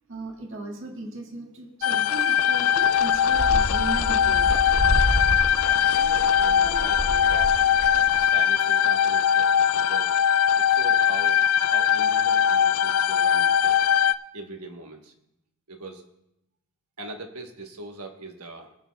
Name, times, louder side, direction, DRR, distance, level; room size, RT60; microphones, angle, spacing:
voice 1, 0.1-4.7 6.6-6.9, right 2 dB, 60° right, 1 dB, 1.8 m, -37 dB
sound 1, 1.8-14.1, left 9 dB, 75° left, 0.4 m, -21 dB
sound 2, 2.8-8.2, equal, 55° left, 1.4 m, -29 dB
voice 2, 5.8-7.6 8.2-10.1 10.6-13.9 14.3-15.1 15.7-16.1 17.0-18.8, right 2 dB, 80° right, 4 dB, 1.3 m, -41 dB
22.0 x 8.4 x 2.3 m, 0.85 s
head